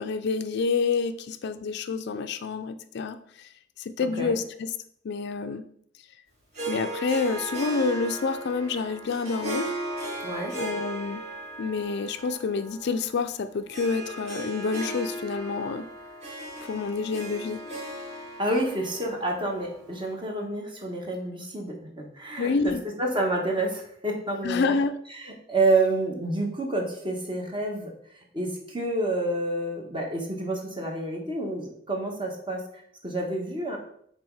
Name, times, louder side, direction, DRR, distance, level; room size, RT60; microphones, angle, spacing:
voice 1, 0.0-3.5 3.8-4.7 5.0-5.6 6.7-9.7 10.6-11.2 11.6-15.9 16.6-17.6 22.4-22.8 24.4-25.0, left 4 dB, 60° left, 11 dB, 0.4 m, -28 dB
Harp, 6.5-20.2, right 1 dB, 55° right, 3.0 m, -37 dB
voice 2, 10.2-10.5 18.4-22.7 23.0-24.8 25.2-27.9 28.3-32.6 33.0-33.8, right 2 dB, 25° right, 1 dB, 1.3 m, -28 dB
6.2 x 4.0 x 4.7 m, 0.67 s
head